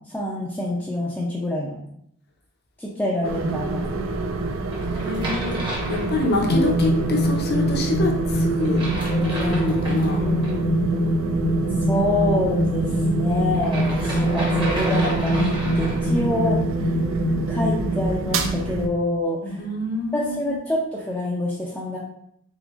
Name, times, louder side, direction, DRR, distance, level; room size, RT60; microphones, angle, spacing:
voice 1, 0.1-1.8 2.8-3.8 10.2-11.1 11.9-16.6 17.5-19.6 20.1-22.0, left 2 dB, 5° left, -7 dB, 0.4 m, -26 dB
sound 1, 3.2-18.9, right 3 dB, 70° right, 0.4 m, -27 dB
sound 2, 4.7-6.7 8.6-10.5 13.5-16.2, right 1 dB, 20° right, 0.8 m, -32 dB
voice 2, 5.0-5.6 5.9-10.2 19.6-20.6, left 2 dB, 50° left, 2 dB, 0.6 m, -26 dB
sound 3, 6.5-19.3, equal, 90° left, 1.4 m, -25 dB
3.8 x 3.5 x 2.4 m, 0.73 s
head